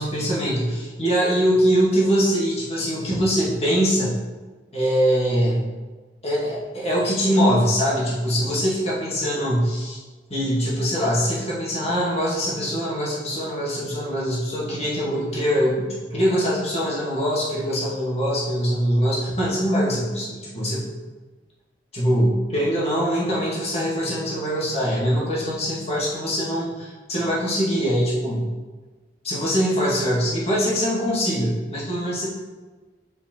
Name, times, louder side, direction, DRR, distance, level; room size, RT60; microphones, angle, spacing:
voice 1, 0.0-4.1 4.7-5.6 6.2-10.0 10.3-20.9 21.9-28.4 29.2-32.3, equal, 35° left, -6 dB, 2.3 m, -23 dB
7.8 x 5.1 x 4.6 m, 1.3 s
head